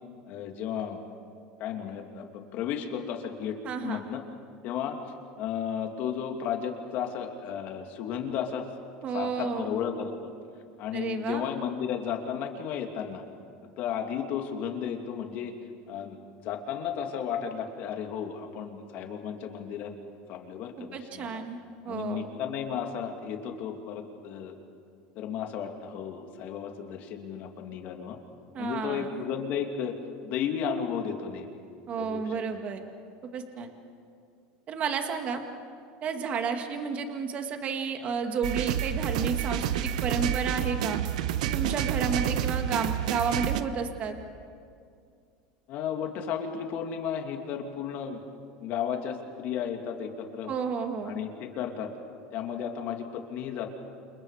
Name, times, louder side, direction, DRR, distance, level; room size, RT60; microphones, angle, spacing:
voice 1, 0.3-1.0 1.6-3.6 3.8-4.2 4.6-5.0 5.4-8.7 9.1-10.3 10.8-13.2 13.8-15.5 15.9-16.2 16.4-19.9 20.3-21.4 21.8-24.6 25.1-28.2 28.6-30.0 30.2-31.6 32.0-32.4 45.7-48.2 48.6-50.5 51.0-51.9 52.3-53.7, left 8 dB, 50° left, 4 dB, 2.6 m, -33 dB
voice 2, 3.6-4.1 9.0-9.7 10.9-11.5 20.8-21.6 21.8-22.3 28.5-29.2 31.9-32.8 33.2-33.7 34.7-35.4 36.0-41.0 41.4-44.2 50.5-51.2, right 5 dB, 35° right, 5 dB, 2.0 m, -31 dB
sound 1, 38.4-43.6, right 10 dB, 90° right, 1.0 m, -29 dB
29.5 x 28.0 x 5.0 m, 2.3 s
supercardioid pair, 130°, 4 cm